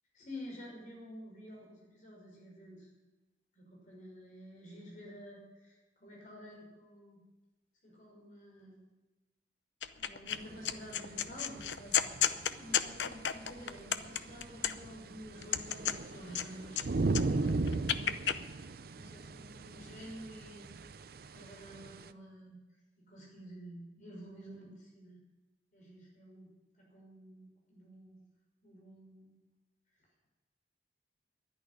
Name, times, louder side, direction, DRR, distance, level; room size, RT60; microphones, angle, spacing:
voice 1, 0.1-2.9 3.5-7.2 7.8-8.9 10.0-18.2 18.9-20.7 21.2-22.6 23.1-25.2 25.7-26.5 26.8-28.2 28.6-29.3, equal, 45° left, -1 dB, 5.9 m, -50 dB
sound 1, 9.8-10.4 10.7-15.0 15.4-16.8 17.1-18.4, left 9 dB, 85° left, 0.7 m, -32 dB
sound 2, 10.3-22.1, right 3 dB, 55° right, 0.5 m, -38 dB
11.0 x 10.5 x 9.9 m, 1.1 s
head